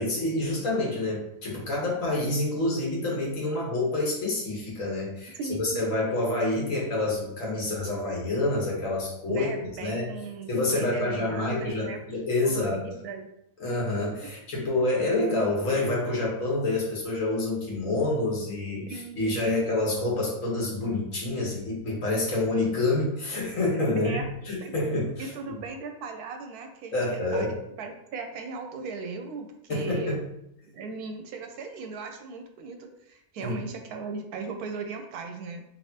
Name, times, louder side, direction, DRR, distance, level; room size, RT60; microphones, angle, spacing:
voice 1, 0.0-9.5 9.8-10.1 10.5-12.9 13.6-25.3 26.9-27.5 29.7-30.2 33.4-33.5, left 2 dB, 55° left, -3 dB, 1.5 m, -27 dB
voice 2, 5.3-5.8 9.3-12.0 12.4-13.3 18.9-19.6 19.9-20.1 23.9-24.3 24.6-24.8 25.2-30.2 30.7-35.6, right 4 dB, 75° right, 5 dB, 1.0 m, -38 dB
4.4 x 3.4 x 2.8 m, 0.79 s
omnidirectional pair, 1.7 m